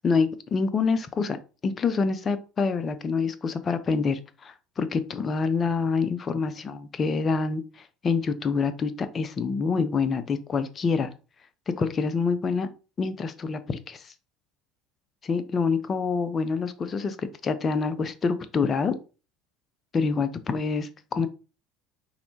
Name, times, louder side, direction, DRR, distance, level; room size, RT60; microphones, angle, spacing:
voice 1, 0.0-1.4 1.6-7.6 8.0-11.1 11.7-12.7 13.0-14.1 15.2-19.0 19.9-21.3, left 5 dB, 35° left, 11 dB, 0.5 m, -26 dB
4.2 x 3.2 x 2.7 m, 0.34 s
hypercardioid pair, 70°, 0 cm